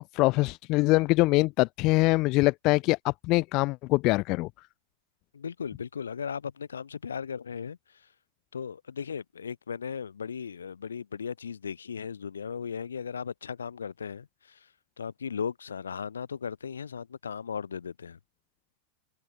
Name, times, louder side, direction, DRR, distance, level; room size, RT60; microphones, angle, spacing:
voice 1, 0.1-4.5, left 22 dB, 40° left, 0.8 m, -24 dB
voice 2, 5.3-7.8 8.5-14.6 15.0-18.2, left 6 dB, 70° left, 1.6 m, -36 dB
figure-of-eight pair, 90°, 0 cm